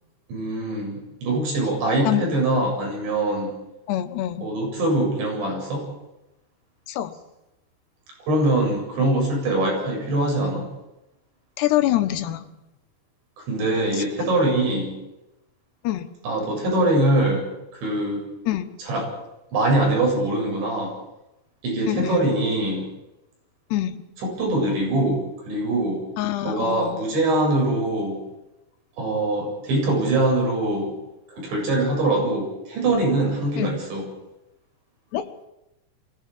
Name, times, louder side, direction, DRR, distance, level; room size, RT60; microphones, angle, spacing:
voice 1, 0.3-3.5 4.4-5.9 8.2-10.7 13.5-14.9 16.2-17.5 17.7-18.2 18.8-19.1 19.5-20.9 21.6-22.9 24.2-25.2 25.5-26.0 26.4-28.2 29.0-30.9 31.3-34.0, right 2 dB, 90° right, 0 dB, 10.0 m, -23 dB
voice 2, 3.9-4.5 6.9-7.1 11.6-12.5 13.9-14.0 15.8-16.1 18.5-18.7 21.9-22.3 23.7-24.0 26.2-27.0 33.6-33.8 35.1-35.2, left 13 dB, 75° left, 9 dB, 3.2 m, -25 dB
23.5 x 17.0 x 8.6 m, 0.93 s
omnidirectional pair, 5.1 m